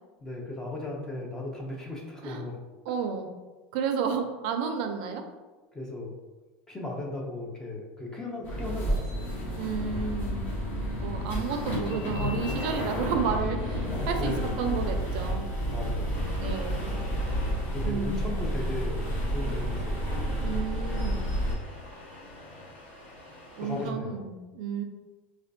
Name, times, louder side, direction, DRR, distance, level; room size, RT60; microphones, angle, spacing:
voice 1, 0.2-2.6 5.7-6.1 6.7-9.3 14.1-14.6 15.7-16.2 17.7-20.2 23.6-24.3, left 2 dB, 10° left, -1 dB, 0.5 m, -36 dB
voice 2, 2.9-3.3 3.7-5.2 9.6-10.5 11.0-15.8 16.4-16.8 17.8-18.4 20.4-21.3 23.6-24.8, right 6 dB, 60° right, 5 dB, 0.4 m, -32 dB
sound 1, 8.4-21.5, equal, 35° left, 0.8 m, -30 dB
Accelerating revving vroom, 16.1-23.9, left 1 dB, 85° left, 1.2 m, -46 dB
4.2 x 2.2 x 2.6 m, 1.2 s
supercardioid pair, 165°, 5 cm